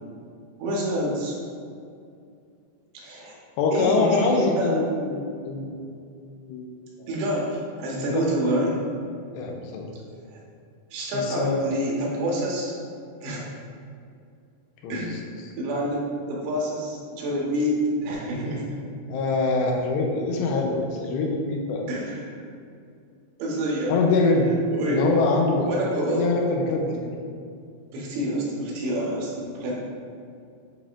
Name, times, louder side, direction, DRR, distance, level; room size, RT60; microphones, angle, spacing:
voice 1, 0.6-1.4 2.9-3.3 3.7-4.9 7.1-8.8 10.3-10.4 10.9-12.7 13.2-13.5 14.9-15.2 15.6-18.8 21.9-22.4 23.4-24.0 24.7-25.1 25.7-26.3 27.9-29.8, equal, 80° right, -4 dB, 3.3 m, -27 dB
voice 2, 3.6-5.7 6.5-6.7 7.0-7.2 8.0-8.2 9.3-9.9 11.1-11.7 14.8-15.0 19.1-21.9 23.9-24.5 24.9-25.7 26.1-27.1, left 3 dB, 85° left, 0 dB, 2.8 m, -24 dB
9.9 x 4.2 x 2.5 m, 2.4 s
omnidirectional pair, 4.9 m